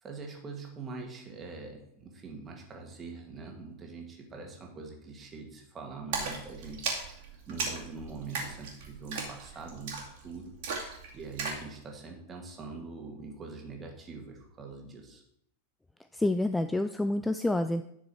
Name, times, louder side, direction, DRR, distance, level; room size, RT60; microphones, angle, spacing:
voice 1, 0.0-10.5 11.1-15.2, right 4 dB, 20° right, 1 dB, 2.1 m, -43 dB
Splash splatter, 6.1-11.7, right 4 dB, 50° right, 2.4 m, -37 dB
voice 2, 16.1-17.8, left 1 dB, 5° left, 10 dB, 0.3 m, -28 dB
11.0 x 6.1 x 4.4 m, 0.75 s
figure-of-eight pair, 90°, 0 cm